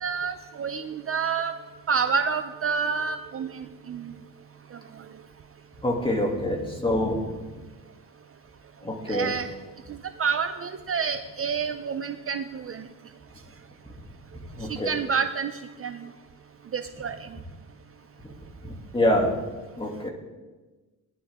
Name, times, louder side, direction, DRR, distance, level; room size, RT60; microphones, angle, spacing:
voice 1, 0.0-1.5 1.9-4.1 9.1-9.5 9.9-12.8 14.9-15.5 15.8-16.0 16.7-17.2, right 6 dB, 40° right, 9 dB, 0.5 m, -28 dB
voice 2, 5.8-7.2 8.8-9.3 14.6-14.9 18.6-19.3 19.8-20.1, left 1 dB, 15° left, -1 dB, 2.6 m, -25 dB
17.5 x 11.0 x 3.6 m, 1.2 s
cardioid pair, 115°, 36 cm